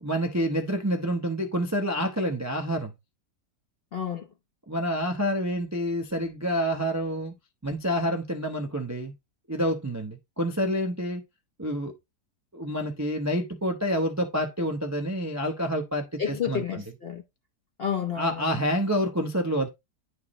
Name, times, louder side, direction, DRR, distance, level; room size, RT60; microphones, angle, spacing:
voice 1, 0.0-2.9 4.7-7.3 7.6-9.1 9.5-11.2 11.6-11.9 12.5-16.6 18.2-19.7, equal, 25° right, 0.3 m, -28 dB
voice 2, 3.9-4.3 16.2-17.2 17.8-18.6, left 8 dB, 55° left, 0.6 m, -30 dB
9.7 x 4.6 x 3.0 m
omnidirectional pair, 1.8 m